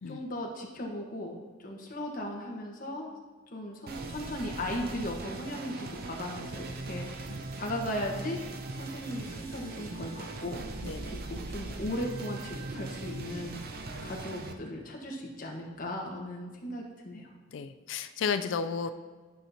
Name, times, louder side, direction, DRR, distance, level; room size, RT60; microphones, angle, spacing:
voice 1, 0.1-3.1 3.5-7.3 7.6-8.4 8.7-10.6 11.0-13.6 14.0-17.3, left 1 dB, 45° left, -1 dB, 1.2 m, -37 dB
sound 1, 3.9-14.5, right 2 dB, 50° right, 0.6 m, -40 dB
voice 2, 17.5-18.9, left 6 dB, 65° left, 10 dB, 0.3 m, -32 dB
12.0 x 5.6 x 2.8 m, 1.5 s
head